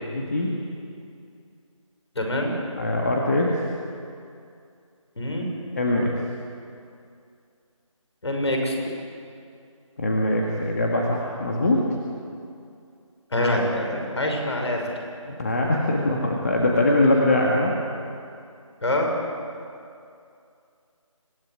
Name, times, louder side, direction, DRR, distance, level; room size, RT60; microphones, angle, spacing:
voice 1, 0.1-0.6 2.8-3.6 5.8-6.1 10.0-11.8 15.3-17.7, left 1 dB, 30° left, -2 dB, 2.0 m, -22 dB
voice 2, 2.1-2.5 5.2-5.5 8.2-8.8 13.3-14.8 18.8-19.1, left 1 dB, 55° left, 2 dB, 6.2 m, -25 dB
26.0 x 17.0 x 9.7 m, 2.5 s
figure-of-eight pair, 175°, 17 cm